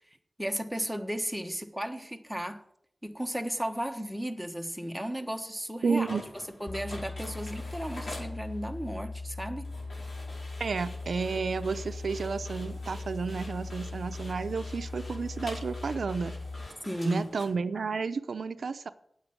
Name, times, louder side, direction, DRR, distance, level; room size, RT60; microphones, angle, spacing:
voice 1, 0.4-2.6 3.0-6.2 6.6-9.7 16.8-17.2, equal, ahead, 4 dB, 1.3 m, -34 dB
voice 2, 5.8-6.2 10.6-16.3 17.0-18.9, right 5 dB, 80° right, 11 dB, 0.6 m, -31 dB
sound 1, 5.9-17.5, left 1 dB, 65° left, 5.2 m, -47 dB
sound 2, 6.7-16.7, left 3 dB, 15° left, 0.6 m, -39 dB
8.9 x 8.7 x 8.7 m, 0.71 s
wide cardioid pair, 85°, 0 cm